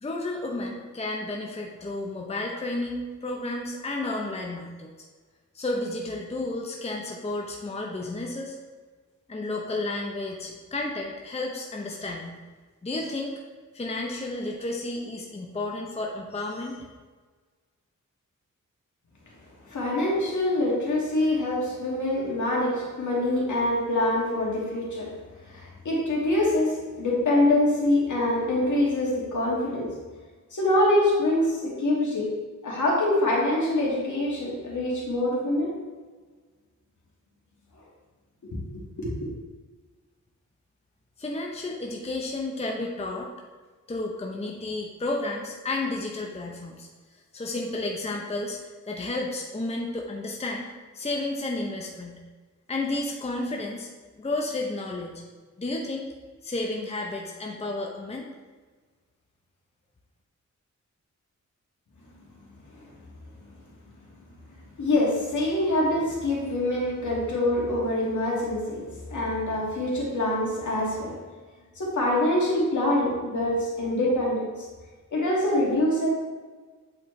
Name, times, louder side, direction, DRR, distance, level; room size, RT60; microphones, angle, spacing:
voice 1, 0.0-4.9 5.5-8.6 9.3-12.4 12.8-13.3 13.7-16.9 41.2-43.3 43.9-46.9 47.3-48.6 48.9-52.2 52.7-53.9 54.2-55.1 55.6-56.1 56.4-58.3, left 2 dB, 20° left, 0 dB, 0.7 m, -32 dB
voice 2, 19.7-25.1 25.5-30.0 30.5-35.7 38.4-38.6 39.0-39.3 62.7-62.8 64.8-71.2 71.8-74.5 75.1-76.1, left 1 dB, 70° left, -4 dB, 1.9 m, -25 dB
8.2 x 4.3 x 3.2 m, 1.4 s
wide cardioid pair, 95°, 31 cm